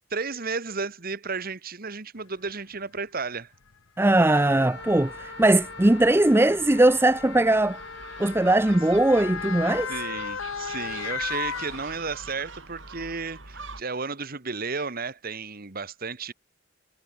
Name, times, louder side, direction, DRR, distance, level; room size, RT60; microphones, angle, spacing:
voice 1, 0.1-3.5 9.9-16.3, right 4 dB, 45° right, 1.6 m, -33 dB
Motor vehicle (road) / Siren, 2.5-2.6 3.5-3.7 4.8-12.4 12.8-12.9, left 6 dB, 90° left, 1.0 m, -36 dB
voice 2, 4.0-7.8 8.2-9.9, right 1 dB, 10° right, 0.5 m, -20 dB
Wind instrument woodwind instrument, 4.3-10.3, left 4 dB, 60° left, 6.1 m, -42 dB
Gull seagull, 4.8-13.8, right 4 dB, 65° right, 6.2 m, -44 dB
head